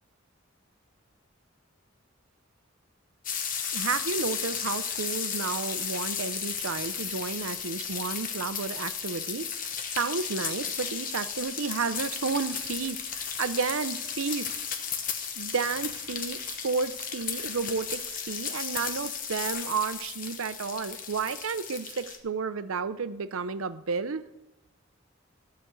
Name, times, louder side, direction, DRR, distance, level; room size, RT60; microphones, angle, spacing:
sound 1, 3.2-22.2, left 7 dB, 40° left, 1.1 m, -34 dB
voice 1, 3.7-9.5 9.9-14.5 15.4-24.2, right 5 dB, 80° right, 13 dB, 0.6 m, -32 dB
13.5 x 5.2 x 7.8 m, 0.96 s
head